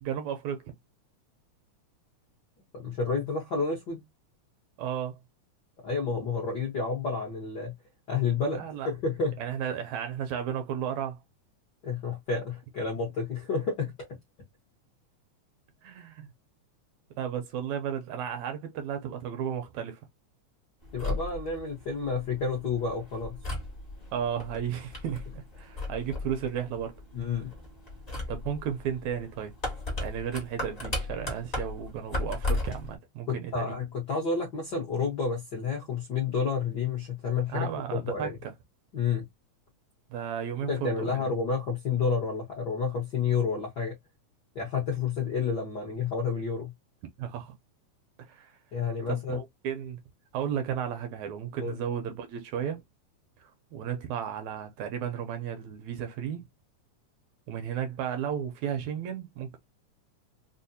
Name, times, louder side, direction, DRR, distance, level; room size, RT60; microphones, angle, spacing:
voice 1, 0.0-0.7 4.8-5.2 8.5-8.9 9.4-11.2 15.8-16.3 17.2-20.0 24.1-27.0 28.3-29.5 30.0-33.8 37.5-38.3 40.1-41.3 47.2-47.6 48.2-48.5 49.1-50.0 50.3-52.8 53.4-56.5 57.5-59.6, right 8 dB, 75° right, 1.8 m, -34 dB
voice 2, 2.7-4.0 5.8-7.7 8.1-9.3 11.8-13.9 20.9-23.4 27.1-27.5 33.3-38.3 38.9-39.2 40.7-43.9 44.5-46.7 48.7-49.4 51.6-51.8, left 5 dB, 60° left, 1.1 m, -30 dB
sound 1, 20.8-32.9, left 2 dB, 35° left, 0.6 m, -36 dB
4.9 x 2.1 x 2.7 m
omnidirectional pair, 3.5 m